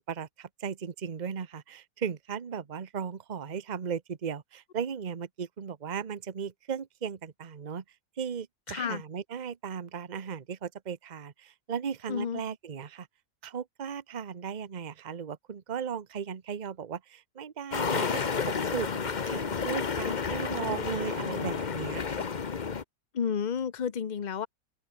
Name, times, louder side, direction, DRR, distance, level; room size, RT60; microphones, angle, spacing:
voice 1, 0.0-7.8 8.2-13.1 13.4-18.3 18.6-22.3, right 7 dB, 30° right, 0.9 m, -36 dB
voice 2, 8.7-9.0 12.1-12.4 20.1-20.2 23.1-24.5, left 7 dB, 75° left, 0.4 m, -31 dB
sound 1, 17.7-22.8, left 5 dB, 35° left, 0.8 m, -31 dB
open air
omnidirectional pair, 2.0 m